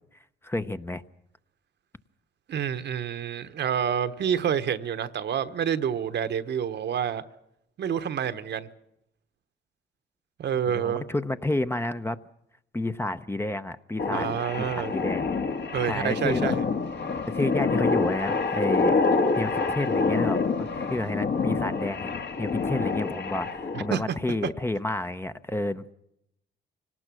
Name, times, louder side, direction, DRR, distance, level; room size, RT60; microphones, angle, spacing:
voice 1, 0.4-1.0 10.7-12.2 12.7-15.2 15.9-16.5 17.3-19.0 19.4-25.9, left 2 dB, 10° left, 0.7 m, -30 dB
voice 2, 2.5-7.2 7.8-8.7 10.4-11.0 14.1-14.9 15.7-16.6 23.7-24.2, right 8 dB, 60° right, 1.1 m, -28 dB
sound 1, 14.0-23.9, left 4 dB, 60° left, 1.9 m, -27 dB
25.5 x 18.5 x 6.2 m
cardioid pair, 90°, 20 cm